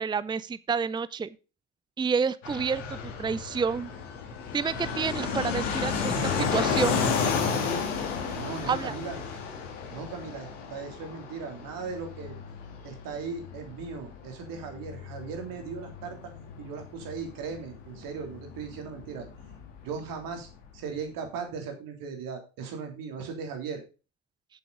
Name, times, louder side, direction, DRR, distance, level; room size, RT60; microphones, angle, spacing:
voice 1, 0.0-1.4 2.0-3.9 4.5-7.0 8.7-8.9, right 5 dB, 15° right, 17 dB, 0.5 m, -29 dB
Fixed-wing aircraft airplane, 2.4-20.8, left 5 dB, 85° left, 2.1 m, -33 dB
voice 2, 8.3-9.2 9.9-12.3 12.8-16.2 16.6-19.3 19.8-23.8, right 5 dB, 65° right, 4 dB, 3.2 m, -38 dB
8.3 x 7.7 x 5.1 m, 0.33 s
hypercardioid pair, 55°, 36 cm